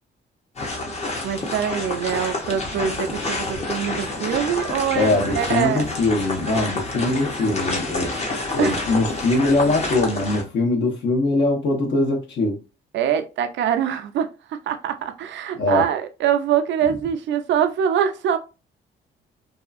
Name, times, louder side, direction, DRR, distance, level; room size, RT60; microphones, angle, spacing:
sound 1, 0.6-10.4, left 2 dB, 35° left, 0.8 m, -28 dB
voice 1, 1.2-5.8 8.6-8.8 12.9-14.3 14.7-18.4, right 9 dB, 70° right, 0.5 m, -24 dB
voice 2, 4.9-8.1 8.5-12.6 15.5-15.8, left 2 dB, 65° left, 1.0 m, -22 dB
2.7 x 2.4 x 2.4 m
cardioid pair, 90°, 20 cm